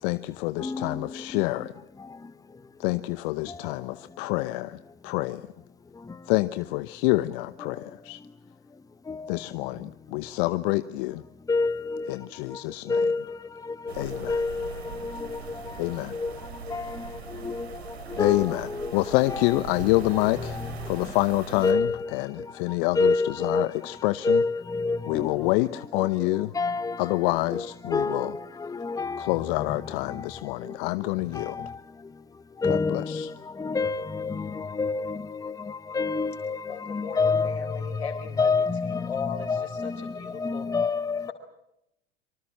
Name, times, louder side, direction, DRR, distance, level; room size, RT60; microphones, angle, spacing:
voice 1, 0.0-1.7 2.8-4.8 5.0-5.4 6.3-8.2 9.3-11.2 12.1-12.9 13.9-14.3 15.8-16.1 18.2-20.6 20.9-21.9 22.1-24.4 25.1-26.5 27.0-28.3 29.2-31.7 32.7-33.3, left 20 dB, 60° left, 0.9 m, -27 dB
voice 2, 0.6-1.4 3.5-3.6 9.1-9.3 11.5-12.1 12.9-13.4 13.6-15.6 16.1-16.3 16.7-17.8 18.1-18.9 19.2-19.9 20.1-20.7 21.6-22.1 23.0-23.7 24.2-25.5 26.0-27.2 27.5-29.8 30.1-30.2 31.3-31.8 32.6-41.3, left 4 dB, 10° left, 1.0 m, -29 dB
sound 1, 13.9-21.7, right 7 dB, 85° right, 3.0 m, -41 dB
voice 3, 36.7-38.5 38.9-39.9 40.2-40.7, left 6 dB, 90° left, 4.1 m, -36 dB
25.5 x 24.5 x 7.5 m
hypercardioid pair, 85°, 31 cm